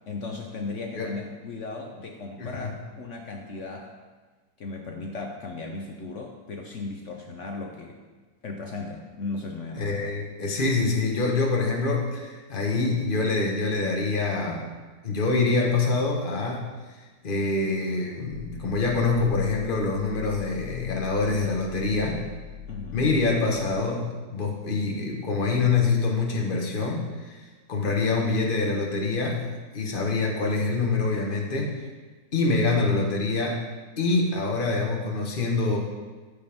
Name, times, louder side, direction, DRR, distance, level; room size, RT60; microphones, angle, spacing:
voice 1, 0.1-3.9 4.6-8.0 8.4-10.0 22.7-23.1, left 3 dB, 55° left, 2 dB, 0.9 m, -36 dB
voice 2, 2.4-2.7 9.7-14.6 15.0-16.6 17.2-22.2 22.9-27.4 27.7-31.9 32.3-33.6 34.0-35.8, left 3 dB, 30° left, 0 dB, 1.2 m, -25 dB
sound 1, 18.3-23.8, left 7 dB, 75° left, 1.7 m, -41 dB
14.0 x 5.2 x 3.5 m, 1.4 s
omnidirectional pair, 1.9 m